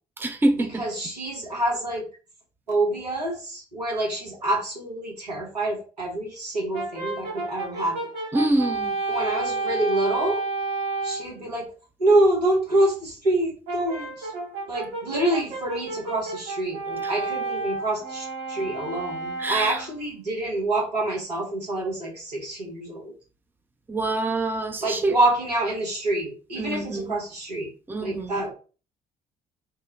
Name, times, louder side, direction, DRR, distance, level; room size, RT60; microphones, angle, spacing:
voice 1, 0.2-0.8 8.3-9.0 17.0-17.1 19.4-19.8 23.9-25.2 26.5-27.2 27.9-28.4, right 2 dB, 10° right, 0.5 m, -26 dB
voice 2, 0.8-2.1 2.7-8.0 9.1-10.4 11.0-11.7 12.0-14.3 14.7-23.1 24.8-27.7 28.0-28.5, right 1 dB, 85° right, 0.9 m, -26 dB
Brass instrument, 6.7-11.3 13.7-20.0, right 3 dB, 60° right, 1.2 m, -31 dB
2.9 x 2.1 x 3.5 m
figure-of-eight pair, 45°, 20 cm